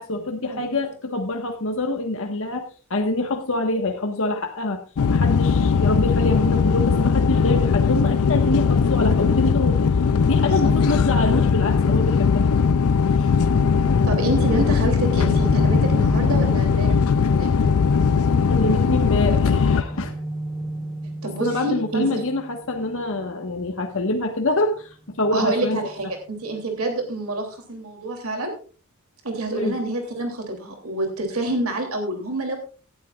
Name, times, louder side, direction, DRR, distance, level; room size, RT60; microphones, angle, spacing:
voice 1, 0.0-4.8 5.1-9.8 10.2-12.5 13.2-13.3 18.5-20.1 21.4-25.9 29.5-29.7, left 2 dB, 65° left, 3 dB, 1.5 m, -25 dB
sound 1, 5.0-19.8, left 5 dB, 80° left, 0.5 m, -19 dB
sound 2, 13.4-26.2, right 1 dB, 5° right, 7.2 m, -34 dB
voice 2, 14.1-17.0 17.3-17.7 21.2-22.2 25.3-28.5 29.2-32.6, right 2 dB, 70° right, 4 dB, 3.0 m, -27 dB
18.0 x 11.0 x 2.4 m, 0.37 s
head